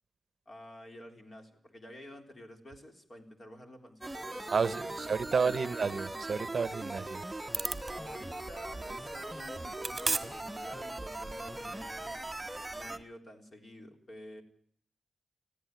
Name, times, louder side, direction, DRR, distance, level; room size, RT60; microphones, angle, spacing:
voice 1, 0.5-6.0 7.8-12.2 12.7-14.4, equal, 40° left, 3.8 m, -50 dB
sound 1, 4.0-13.0, right 2 dB, 10° right, 1.0 m, -40 dB
voice 2, 4.5-7.2, right 5 dB, 55° right, 0.8 m, -31 dB
sound 2, 7.5-13.0, right 3 dB, 25° right, 1.7 m, -40 dB
20.5 x 15.0 x 9.2 m
wide cardioid pair, 95°, 0 cm